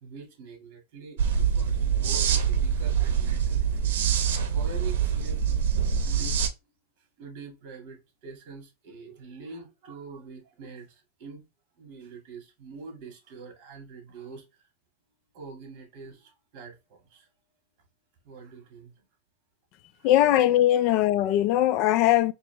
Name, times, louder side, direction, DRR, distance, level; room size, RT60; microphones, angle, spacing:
voice 1, 0.0-3.8 4.5-6.5 7.2-11.4 11.8-14.4 15.3-17.3 18.2-18.9 19.9-20.1 20.8-20.9, right 5 dB, 45° right, 2.1 m, -45 dB
sound 1, 1.2-6.5, right 7 dB, 80° right, 0.8 m, -25 dB
voice 2, 20.0-22.3, left 13 dB, 45° left, 0.4 m, -21 dB
3.9 x 3.0 x 3.4 m
supercardioid pair, 145°, 0 cm